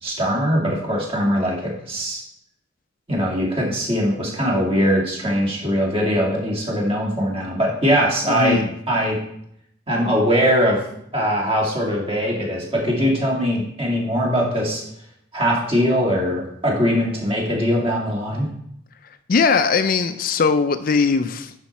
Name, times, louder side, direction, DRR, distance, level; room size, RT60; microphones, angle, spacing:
voice 1, 0.0-2.2 3.1-8.6 8.9-9.2 9.9-10.8 11.1-14.8 15.3-18.5, equal, 30° right, 2.3 m, -21 dB
voice 2, 8.3-8.7 19.3-21.5, left 5 dB, 45° left, 0.4 m, -19 dB
9.9 x 5.6 x 4.2 m
head